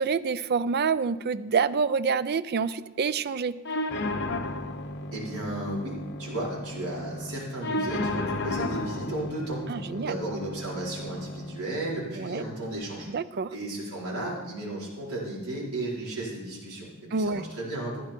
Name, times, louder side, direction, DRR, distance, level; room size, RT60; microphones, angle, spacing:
voice 1, 0.0-3.5 9.7-10.2 12.2-12.4 13.1-13.5 17.1-17.4, right 5 dB, 45° right, 15 dB, 0.4 m, -27 dB
sound 1, 3.6-11.6, left 2 dB, 55° left, 1.1 m, -34 dB
voice 2, 5.1-5.9 6.2-13.1 13.5-18.0, right 1 dB, 85° right, -5 dB, 4.6 m, -34 dB
15.0 x 10.0 x 4.5 m, 1.1 s
head